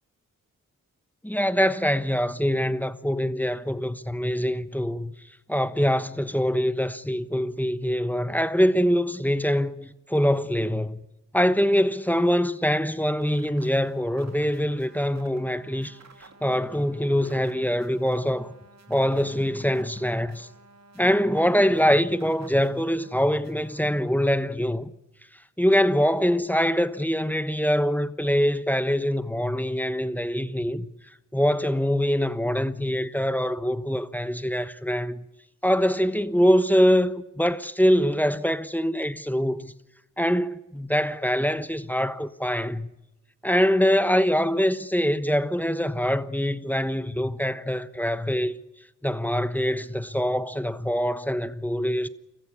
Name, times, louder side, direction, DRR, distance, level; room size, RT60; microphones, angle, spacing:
voice 1, 1.2-5.1 5.5-11.0 11.3-16.0 16.4-18.5 18.9-20.5 21.0-24.9 25.6-30.9 31.3-35.2 35.6-39.7 40.2-42.9 43.4-48.5 49.0-52.1, equal, 5° left, 1.2 m, -24 dB
sound 1, 13.2-24.2, right 3 dB, 55° right, 2.6 m, -52 dB
24.0 x 15.0 x 8.3 m
cardioid pair, 55°, 32 cm